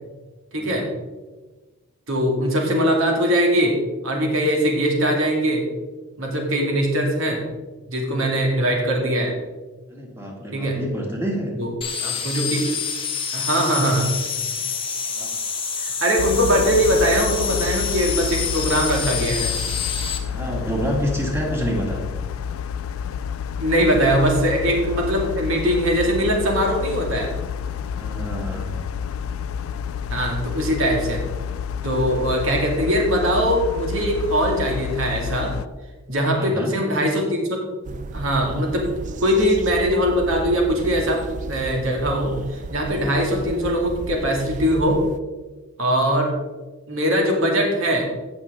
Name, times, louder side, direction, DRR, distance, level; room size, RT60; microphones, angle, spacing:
voice 1, 0.5-0.9 2.1-3.8 4.0-5.6 6.2-7.4 7.9-9.3 10.5-10.8 11.6-11.7 12.0-12.7 13.3-14.1 15.8-19.5 23.6-27.3 30.1-31.2 31.8-35.5 36.1-45.0 45.8-46.3 46.9-48.1, equal, 70° right, 0 dB, 2.2 m, -21 dB
voice 2, 9.9-11.5 15.1-15.3 16.5-16.8 20.2-22.0 28.0-28.7 36.4-36.7, equal, 10° right, -1 dB, 1.9 m, -28 dB
sound 1, 11.8-20.2, left 6 dB, 25° left, 1.1 m, -27 dB
sound 2, 16.2-35.7, left 7 dB, 75° left, 0.4 m, -29 dB
sound 3, 37.9-45.2, right 3 dB, 35° right, 0.4 m, -34 dB
17.0 x 6.2 x 3.6 m, 1.2 s
head